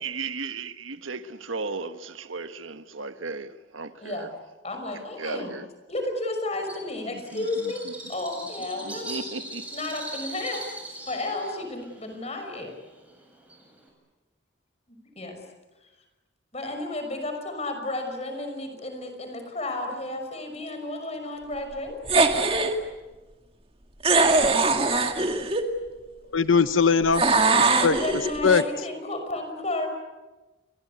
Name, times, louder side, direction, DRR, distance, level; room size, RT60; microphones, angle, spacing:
voice 1, 0.0-4.3 5.2-5.7 7.1-7.7 8.8-9.6, right 4 dB, 85° right, 1.5 m, -35 dB
voice 2, 4.0-4.3 4.6-5.6 5.9-7.8 8.1-9.1 9.7-10.6 11.1-12.7 14.9-15.4 16.5-22.0 27.7-29.9, left 2 dB, 35° left, 5.9 m, -32 dB
Bird, 6.7-13.9, right 1 dB, 5° right, 7.6 m, -40 dB
sound 1, 22.1-22.8 24.0-25.7 27.1-28.6, right 3 dB, 30° right, 2.1 m, -21 dB
voice 3, 26.3-27.2 27.6-28.0 28.4-28.6, left 5 dB, 90° left, 0.9 m, -20 dB
30.0 x 23.0 x 8.3 m
head